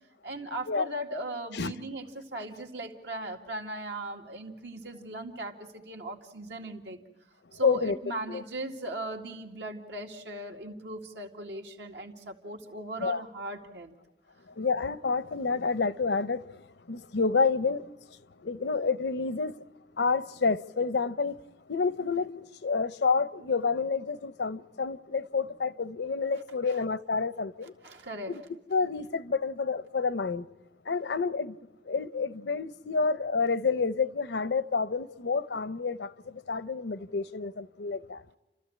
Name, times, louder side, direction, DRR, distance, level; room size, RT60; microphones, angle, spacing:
voice 1, 0.2-7.0 7.5-13.9 27.8-28.4, right 1 dB, 85° right, 2.1 m, -38 dB
voice 2, 7.6-8.0 8.3-8.4 13.0-13.2 14.6-16.5 16.9-17.9 18.4-19.5 20.0-21.4 21.7-27.7 28.3-28.4 28.7-30.5 30.9-31.6 31.9-38.2, left 4 dB, 80° left, 0.7 m, -29 dB
30.0 x 13.5 x 8.7 m
head